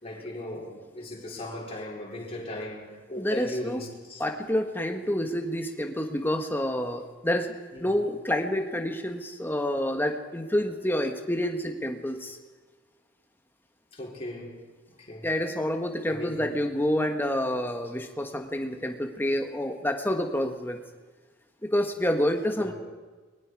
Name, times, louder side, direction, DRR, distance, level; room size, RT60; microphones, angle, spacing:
voice 1, 0.0-4.2 7.7-7.9 13.9-14.5 15.0-15.3 16.1-16.5 22.6-22.7, left 1 dB, 30° left, 4.5 m, -37 dB
voice 2, 3.2-3.8 4.2-12.4 15.2-20.8 21.6-22.7, left 1 dB, 10° left, 1.5 m, -28 dB
30.0 x 21.5 x 4.8 m
head